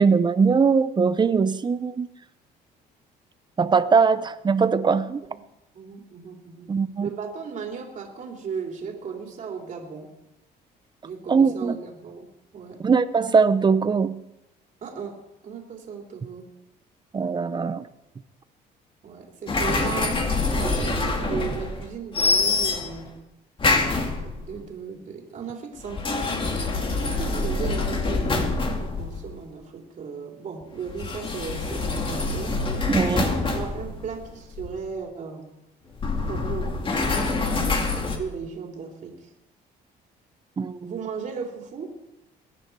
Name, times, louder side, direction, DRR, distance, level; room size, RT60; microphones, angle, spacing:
voice 1, 0.0-2.1 3.6-5.2 6.7-7.1 11.3-11.8 12.8-14.2 17.1-17.9 32.9-33.2 40.6-40.9, right 5 dB, 25° right, 14 dB, 0.8 m, -21 dB
voice 2, 5.7-6.7 7.0-10.1 11.0-12.9 14.8-16.5 19.0-23.2 24.1-26.3 27.0-32.6 33.0-35.5 36.2-36.7 37.9-39.3 40.8-42.0, right 6 dB, 50° right, 1 dB, 3.1 m, -36 dB
sound 1, 19.5-21.9 22.1-23.1 23.6-24.5 25.8-29.4 30.9-34.9 35.9-38.2, left 3 dB, 30° left, 2.3 m, -26 dB
22.0 x 9.9 x 4.7 m, 0.91 s
cardioid pair, 110°, 17 cm